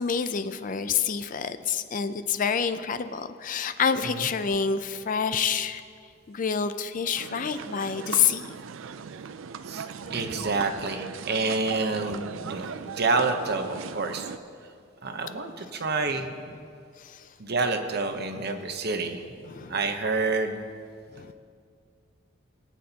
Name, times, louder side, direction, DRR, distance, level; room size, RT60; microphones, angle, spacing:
voice 1, 0.0-5.8 6.3-8.5 10.0-10.5 12.1-12.2 16.5-16.6 17.0-17.3 19.4-19.8 21.1-21.3, left 6 dB, 40° left, 11 dB, 0.4 m, -28 dB
sound 1, 7.1-14.4, right 6 dB, 70° right, 0.4 m, -38 dB
voice 2, 10.1-14.3 15.0-16.3 17.4-19.2 19.7-20.6, right 3 dB, 50° right, 6 dB, 0.9 m, -28 dB
22.5 x 8.6 x 2.9 m, 2.3 s
head